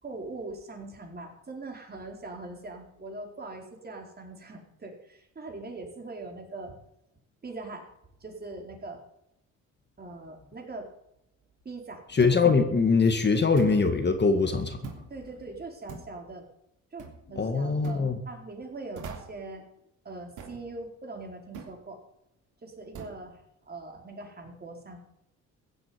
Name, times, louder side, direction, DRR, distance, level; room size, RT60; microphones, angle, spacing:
voice 1, 0.0-6.8 7.4-7.9 8.2-9.0 10.0-10.9 11.6-12.0 13.3-13.4 15.1-16.4 16.9-19.7 20.0-22.0 22.6-23.4 23.7-25.0, right 2 dB, 30° right, 2 dB, 4.5 m, -41 dB
voice 2, 12.1-14.9 17.3-18.2, left 4 dB, 35° left, 7 dB, 2.1 m, -23 dB
sound 1, 12.2-12.5 13.6-13.9 14.8-15.1 15.9-16.2 17.0-17.2 17.8-18.0 18.9-19.4 20.4-20.6 21.5-21.8 22.9-23.2, right 6 dB, 80° right, 3.3 m, -42 dB
15.5 x 8.0 x 9.5 m, 0.79 s
cardioid pair, 90°, 30 cm